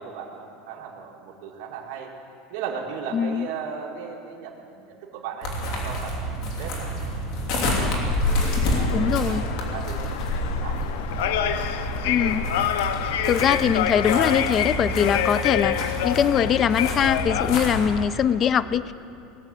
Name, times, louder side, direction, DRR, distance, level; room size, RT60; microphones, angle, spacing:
voice 1, 0.0-2.1 2.5-7.2 7.4-8.2 8.7-10.3 10.6-11.7 15.8-16.0 18.6-18.8, right 6 dB, 60° right, -3 dB, 2.2 m, -37 dB
voice 2, 3.1-3.5 8.9-9.4 12.0-12.5 13.2-15.8 16.0-18.9, left 8 dB, 30° left, 16 dB, 0.4 m, -22 dB
sound 1, 5.4-17.9, left 1 dB, 55° left, 3.0 m, -28 dB
sound 2, 8.6-18.0, left 9 dB, 90° left, 0.7 m, -28 dB
19.5 x 7.3 x 9.0 m, 2.6 s
supercardioid pair, 155°, 0 cm